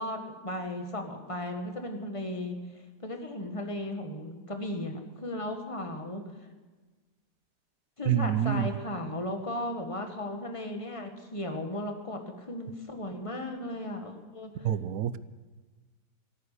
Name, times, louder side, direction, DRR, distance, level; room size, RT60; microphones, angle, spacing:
voice 1, 0.0-2.6 3.0-6.2 8.0-14.7, left 1 dB, 20° left, 4 dB, 1.7 m, -36 dB
voice 2, 8.1-8.7 14.6-15.2, right 10 dB, 65° right, 15 dB, 1.0 m, -27 dB
17.5 x 9.4 x 8.4 m, 1.3 s
omnidirectional pair, 1.8 m